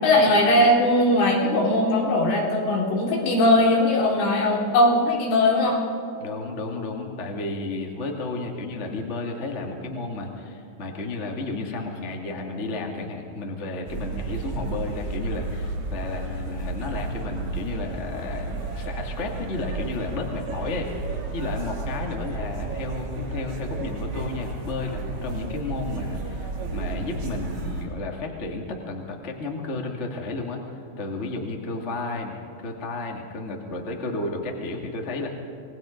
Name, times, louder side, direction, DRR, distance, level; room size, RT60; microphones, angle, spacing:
voice 1, 0.0-5.8, left 1 dB, 75° left, -3 dB, 6.2 m, -20 dB
voice 2, 6.2-20.9 21.3-30.6 31.0-35.3, left 2 dB, 45° left, 1 dB, 0.8 m, -32 dB
sound 1, 13.9-27.9, right 3 dB, 90° right, 7.9 m, -32 dB
27.5 x 19.5 x 5.3 m, 2.7 s
omnidirectional pair, 5.8 m